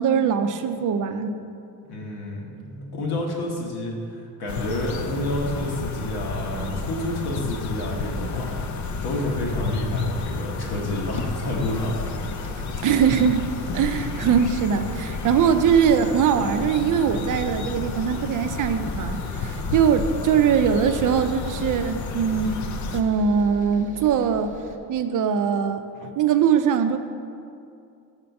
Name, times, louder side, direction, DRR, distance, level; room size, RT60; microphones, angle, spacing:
voice 1, 0.0-1.4 12.8-13.5 13.7-22.6 22.9-24.6 24.9-27.0, right 7 dB, 55° right, 8 dB, 0.5 m, -21 dB
voice 2, 1.9-3.9 4.4-8.5 9.0-12.0, left 1 dB, 80° left, -2 dB, 1.4 m, -29 dB
sound 1, 4.5-23.0, left 4 dB, 50° left, 0.5 m, -31 dB
sound 2, 7.5-24.8, right 3 dB, 20° right, 1.0 m, -43 dB
5.6 x 4.4 x 5.3 m, 2.5 s
cardioid pair, 90°, 38 cm